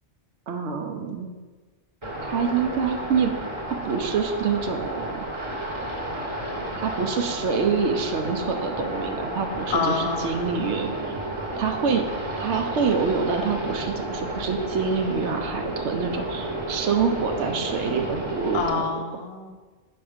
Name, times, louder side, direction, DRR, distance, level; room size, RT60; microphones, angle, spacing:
voice 1, 0.5-1.3 2.2-3.3 3.8-5.3 6.8-11.1 11.6-12.0 12.4-18.8, right 5 dB, 80° right, 4 dB, 0.9 m, -26 dB
sound 1, 2.0-18.7, right 1 dB, 30° right, 0.9 m, -32 dB
voice 2, 9.7-10.3 18.5-19.5, left 4 dB, 65° left, 6 dB, 0.8 m, -27 dB
5.7 x 4.3 x 5.0 m, 1.3 s
omnidirectional pair, 1.2 m